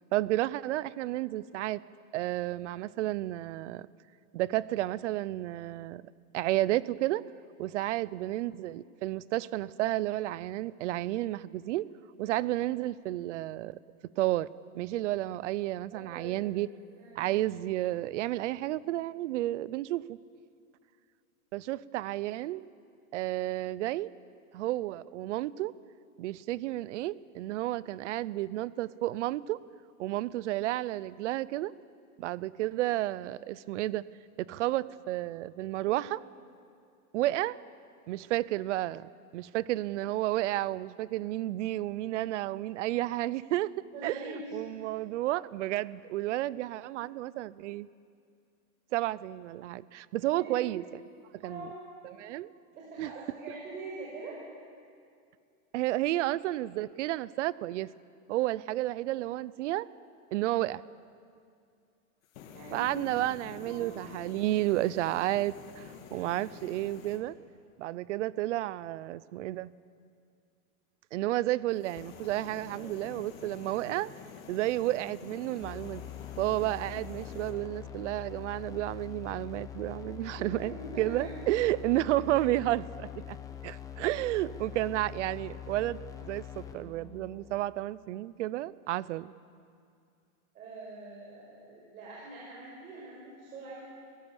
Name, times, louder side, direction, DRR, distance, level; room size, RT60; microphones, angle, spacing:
voice 1, 0.1-1.8 2.1-3.9 4.3-6.0 6.3-7.2 7.6-11.9 12.2-13.8 14.2-14.5 14.7-16.7 17.2-20.2 21.5-22.6 23.1-24.1 24.5-25.7 26.2-29.6 30.0-31.7 32.2-34.0 34.4-36.2 37.1-37.6 38.1-47.9 48.9-50.8 51.4-51.7 52.0-52.5 53.0-53.1 55.7-57.9 58.3-59.9 60.3-60.8 62.7-67.4 67.8-69.7 71.1-74.1 74.5-76.0 76.4-83.4 83.6-89.3, right 15 dB, 55° right, 20 dB, 0.6 m, -31 dB
voice 2, 15.9-16.4 17.0-17.3 35.9-36.0 43.9-44.5 50.3-50.6 51.4-52.3 52.7-54.4 62.5-63.0 63.6-64.0 72.7-73.0 80.3-81.4 90.5-93.8, right 2 dB, 75° right, -4 dB, 6.2 m, -44 dB
sound 1, 62.2-67.2 71.7-77.6, left 7 dB, 65° left, 2.5 m, -48 dB
sound 2, 75.6-87.6, left 10 dB, 10° left, 0.6 m, -44 dB
27.0 x 16.5 x 7.2 m, 2.4 s
supercardioid pair, 160°, 44 cm